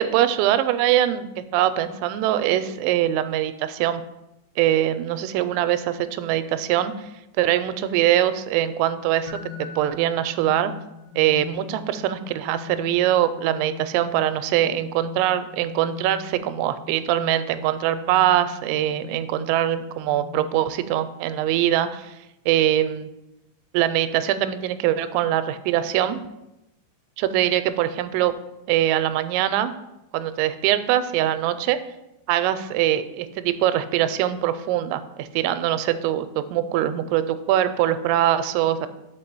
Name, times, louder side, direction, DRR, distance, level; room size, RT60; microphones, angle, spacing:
voice 1, 0.0-4.0 4.6-6.9 7.4-10.7 11.2-22.2 22.5-23.1 23.7-26.2 27.2-28.3 28.7-29.7 30.1-31.8 32.3-38.9, right 12 dB, 90° right, 12 dB, 2.9 m, -22 dB
sound 1, 9.3-21.0, left 8 dB, 80° left, 2.0 m, -41 dB
6.0 x 5.1 x 6.0 m, 0.91 s
omnidirectional pair, 5.1 m